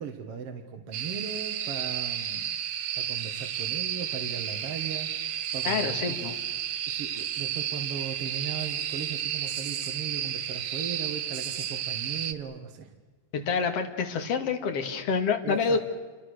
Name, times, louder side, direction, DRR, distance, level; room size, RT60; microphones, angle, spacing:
voice 1, 0.0-2.6 2.9-6.2 6.9-12.9 15.4-15.8, right 7 dB, 50° right, 4 dB, 2.4 m, -38 dB
sound 1, 0.9-12.3, right 10 dB, 65° right, 1.4 m, -32 dB
voice 2, 5.6-6.3 13.3-15.8, left 5 dB, 50° left, 5 dB, 2.9 m, -27 dB
29.5 x 25.5 x 6.6 m, 1.4 s
omnidirectional pair, 3.9 m